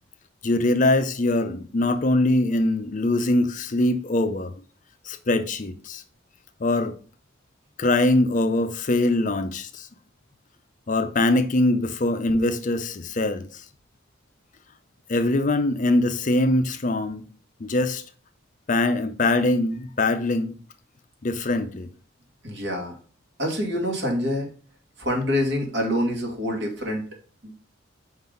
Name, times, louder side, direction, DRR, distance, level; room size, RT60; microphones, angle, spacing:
voice 1, 0.4-4.5 5.0-6.0 6.6-6.9 7.8-9.9 10.9-13.6 15.1-17.3 17.6-18.0 18.7-20.6 21.2-21.9, left 2 dB, 40° left, 0.5 m, -22 dB
voice 2, 22.4-23.0 23.4-24.5 25.0-27.0 27.4-27.5, left 1 dB, 60° right, 2.1 m, -26 dB
5.4 x 3.9 x 5.3 m
head